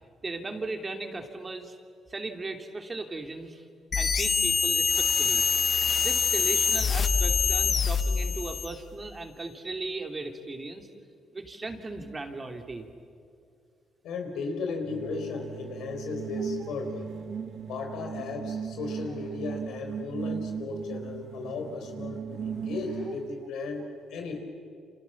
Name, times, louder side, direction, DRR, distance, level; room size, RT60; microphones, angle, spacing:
voice 1, 0.2-1.7 2.1-3.6 4.0-5.4 6.0-10.9 11.3-12.9 16.6-16.7, right 3 dB, 25° right, 5 dB, 2.9 m, -37 dB
sound 1, 3.9-8.8, left 5 dB, 45° left, 1.1 m, -25 dB
voice 2, 14.0-17.1 17.7-24.4, left 4 dB, 80° left, 4 dB, 4.9 m, -35 dB
sound 2, 14.8-23.4, right 7 dB, 65° right, 1.3 m, -37 dB
29.5 x 27.0 x 7.3 m, 2.4 s
cardioid pair, 90°, 0 cm